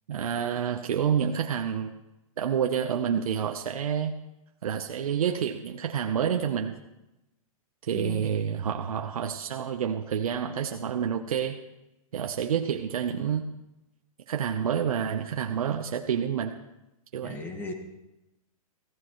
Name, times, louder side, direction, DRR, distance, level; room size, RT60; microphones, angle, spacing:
voice 1, 0.1-1.9 2.4-4.1 4.6-6.8 7.8-11.6 12.1-13.5 14.3-16.6 17.1-17.4, right 8 dB, 80° right, 4 dB, 0.9 m, -28 dB
voice 2, 7.9-8.3 17.2-17.7, left 2 dB, 10° left, 4 dB, 1.4 m, -37 dB
18.5 x 15.5 x 3.2 m, 0.93 s
hypercardioid pair, 160°, 18 cm